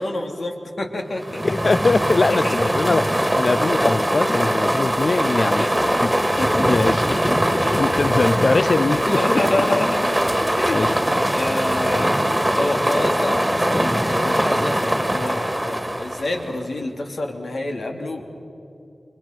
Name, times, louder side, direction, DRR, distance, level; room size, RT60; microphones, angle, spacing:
voice 1, 0.0-1.4 2.3-2.6 5.4-6.9 7.2-8.3 8.9-10.2 10.6-18.2, left 2 dB, 80° left, 3.0 m, -28 dB
sound 1, 1.2-16.6, right 1 dB, 10° right, 2.1 m, -21 dB
voice 2, 1.4-5.7 6.0-6.1 6.7-7.4 7.7-9.4 10.7-10.9, left 3 dB, 55° left, 0.5 m, -22 dB
29.0 x 24.0 x 6.0 m
wide cardioid pair, 95°, 0 cm